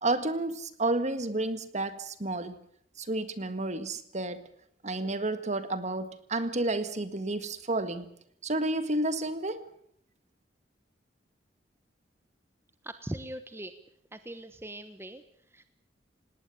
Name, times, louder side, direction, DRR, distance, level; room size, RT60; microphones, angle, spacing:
voice 1, 0.0-2.6 3.0-4.5 4.8-8.1 8.4-9.7, right 2 dB, 40° right, 12 dB, 1.8 m, -31 dB
voice 2, 12.8-13.7 14.1-15.7, right 1 dB, 15° right, 10 dB, 1.1 m, -41 dB
19.0 x 19.0 x 8.6 m, 0.67 s
head